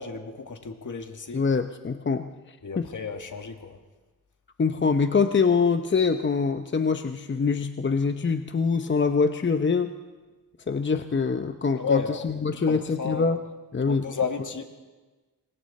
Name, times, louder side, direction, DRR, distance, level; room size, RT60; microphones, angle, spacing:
voice 1, 0.0-1.4 2.6-3.8 11.8-12.2 12.7-13.4 13.9-14.6, left 6 dB, 55° left, 5 dB, 2.1 m, -32 dB
voice 2, 1.3-2.8 4.6-9.9 10.7-13.4 13.7-14.1, left 5 dB, 30° left, 7 dB, 0.8 m, -24 dB
28.5 x 24.0 x 4.3 m, 1.2 s
wide cardioid pair, 100°, 36 cm